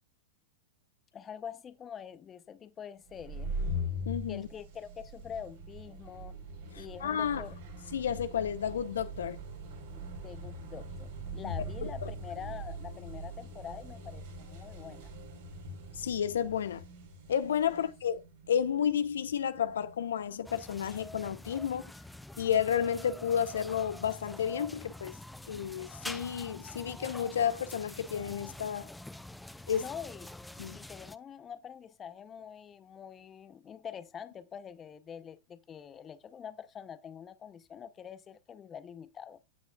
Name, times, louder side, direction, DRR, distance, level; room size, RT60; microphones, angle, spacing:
voice 1, 1.1-3.5 4.3-6.4 6.8-7.5 9.9-15.1 29.8-30.3 30.7-39.4, left 8 dB, 25° left, 0.8 m, -45 dB
sound 1, 3.1-20.5, equal, 70° right, 4.2 m, -42 dB
voice 2, 4.1-4.5 6.7-7.4 7.9-9.4 11.8-12.1 16.0-16.8 17.3-18.2 18.5-21.9 22.4-25.1 25.5-28.9 29.7-29.9 30.6-30.8, left 8 dB, 80° left, 0.8 m, -31 dB
sound 2, 20.4-31.1, left 1 dB, 5° left, 0.5 m, -46 dB
15.0 x 6.3 x 2.4 m
hypercardioid pair, 105°, 0 cm